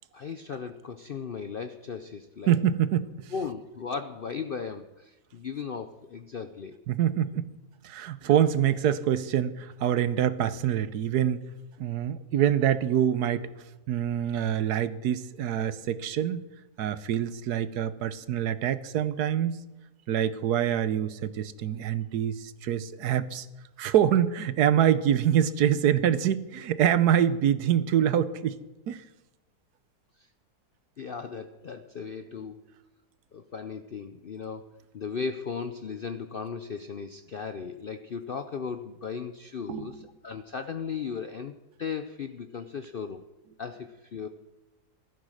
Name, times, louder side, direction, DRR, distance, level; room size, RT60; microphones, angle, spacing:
voice 1, 0.1-2.6 3.3-6.8 31.0-32.7 33.3-41.5 41.8-43.2 43.6-44.3, left 6 dB, 60° left, 0.5 m, -36 dB
voice 2, 2.5-3.3 6.9-7.4 7.8-11.5 11.8-13.5 13.9-16.4 16.8-19.6 20.1-23.5 23.8-28.6 28.9-29.0 39.7-39.9, right 10 dB, 75° right, 1.3 m, -25 dB
16.0 x 12.5 x 6.4 m
omnidirectional pair, 1.7 m